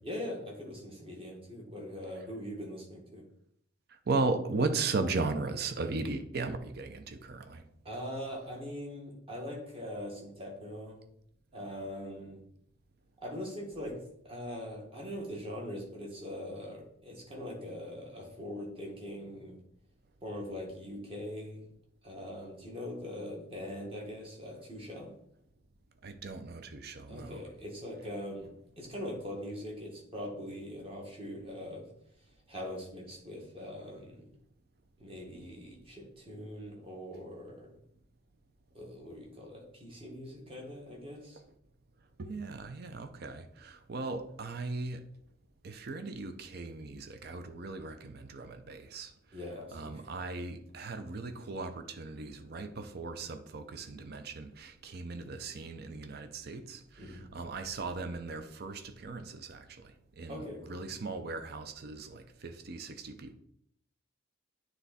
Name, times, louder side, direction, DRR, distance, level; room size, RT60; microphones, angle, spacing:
voice 1, 0.0-3.2 7.9-11.0 11.5-12.4 13.2-14.0 14.2-19.6 20.2-21.6 22.0-25.1 27.1-31.9 32.5-34.3 35.0-37.7 38.7-41.4 49.3-50.1 57.0-57.3 60.3-60.9, left 1 dB, 30° right, 1.7 m, -42 dB
voice 2, 4.1-7.6 26.0-27.4 42.2-45.1 45.6-49.1 49.7-63.3, right 3 dB, 55° right, 0.6 m, -37 dB
9.3 x 3.4 x 4.1 m
head